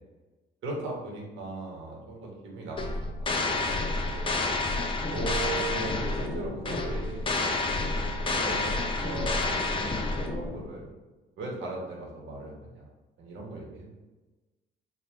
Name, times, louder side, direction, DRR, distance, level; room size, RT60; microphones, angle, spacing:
voice 1, 0.6-3.0 3.4-4.3 5.1-10.8 11.4-12.9 13.2-13.9, right 2 dB, 80° right, -2 dB, 1.3 m, -38 dB
sound 1, 2.8-10.7, left 2 dB, 25° left, 0.6 m, -29 dB
3.9 x 2.5 x 4.6 m, 1.2 s
cardioid pair, 90°, 20 cm